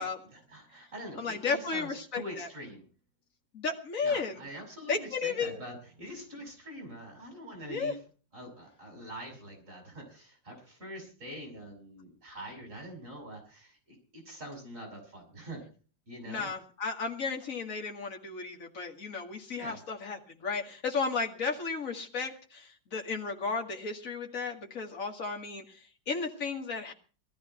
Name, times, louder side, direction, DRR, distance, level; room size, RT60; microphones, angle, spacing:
voice 1, 0.3-2.8 4.0-8.0 8.3-15.6 16.1-16.5 19.6-19.8, equal, 40° right, 2 dB, 6.3 m, -44 dB
voice 2, 1.2-2.5 3.5-4.4 4.9-5.6 7.7-7.9 16.2-26.9, left 4 dB, 45° left, 2 dB, 2.5 m, -34 dB
19.0 x 13.5 x 4.5 m, 0.39 s
omnidirectional pair, 2.0 m